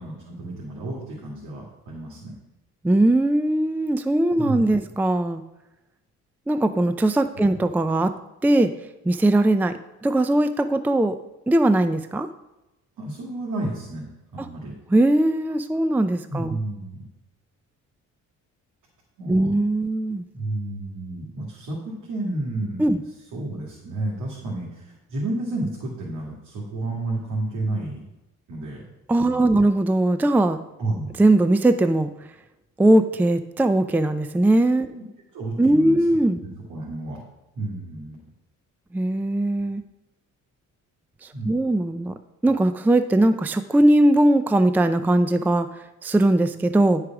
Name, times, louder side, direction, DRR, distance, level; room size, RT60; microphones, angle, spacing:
voice 1, 0.0-2.3 4.4-4.7 7.4-7.6 13.0-14.1 14.3-14.7 16.3-17.0 19.2-19.5 20.3-22.8 23.3-28.0 28.5-28.8 29.2-29.6 30.8-31.1 34.9-35.0 35.3-37.2 37.6-38.2 41.3-41.5, right 2 dB, 80° right, -3 dB, 2.1 m, -31 dB
voice 2, 2.8-5.4 6.5-8.1 8.4-8.7 9.0-11.2 11.5-12.3 14.4-14.5 14.9-16.6 19.3-20.2 22.8-23.0 29.1-30.6 31.2-32.1 32.8-34.9 35.6-36.4 38.9-39.8 41.2-42.2 42.4-47.0, right 1 dB, 5° right, 10 dB, 0.4 m, -20 dB
10.0 x 4.9 x 5.9 m, 0.98 s
cardioid pair, 90°, 30 cm